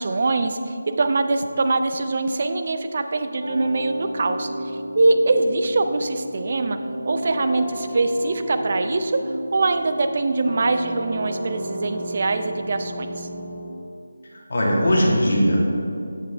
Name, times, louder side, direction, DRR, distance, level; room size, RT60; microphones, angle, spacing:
voice 1, 0.0-4.5 5.0-6.8 7.1-9.1 9.5-13.3, right 3 dB, 45° right, 8 dB, 0.5 m, -23 dB
sound 1, 3.4-13.6, right 1 dB, 90° right, 1.6 m, -32 dB
voice 2, 14.3-15.6, equal, 60° left, -3 dB, 1.8 m, -19 dB
7.3 x 7.0 x 3.3 m, 2.6 s
figure-of-eight pair, 160°, 0 cm